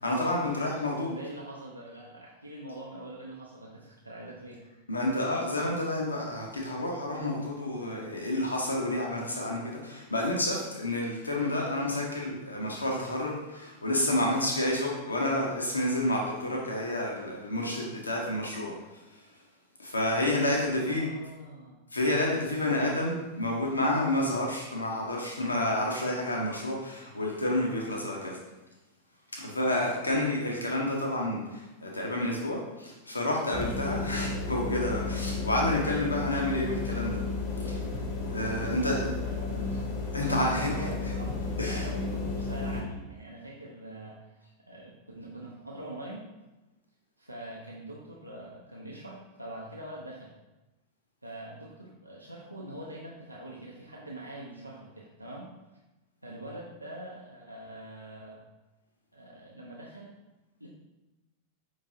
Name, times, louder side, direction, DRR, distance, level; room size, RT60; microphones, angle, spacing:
voice 1, 0.0-1.1 4.9-18.8 19.1-19.2 19.8-21.1 21.9-28.4 29.3-37.3 37.5-37.8 38.3-39.1 40.1-40.9 41.6-41.9, left 1 dB, 80° left, -1 dB, 0.6 m, -29 dB
voice 2, 1.1-4.6 20.8-21.8 38.5-46.2 47.2-50.3 51.2-55.5 56.2-58.4 59.1-60.1 60.6-60.7, right 1 dB, 85° right, -4 dB, 0.5 m, -44 dB
sound 1, 33.5-42.8, left 3 dB, 45° left, 0.7 m, -33 dB
5.1 x 3.1 x 2.6 m, 1.0 s
figure-of-eight pair, 90°, 0 cm